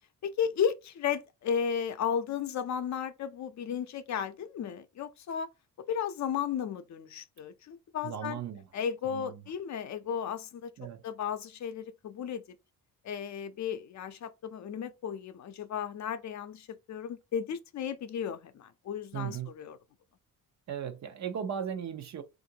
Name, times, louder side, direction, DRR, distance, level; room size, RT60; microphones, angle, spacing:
voice 1, 0.2-5.5 5.8-8.4 8.7-10.7 11.0-12.4 13.0-19.8, left 8 dB, 55° left, 0.6 m, -34 dB
voice 2, 8.0-8.7 9.0-9.4 10.8-11.0 19.1-19.5 20.7-22.2, right 8 dB, 55° right, 0.7 m, -37 dB
3.6 x 2.5 x 2.7 m
cardioid pair, 100°, 34 cm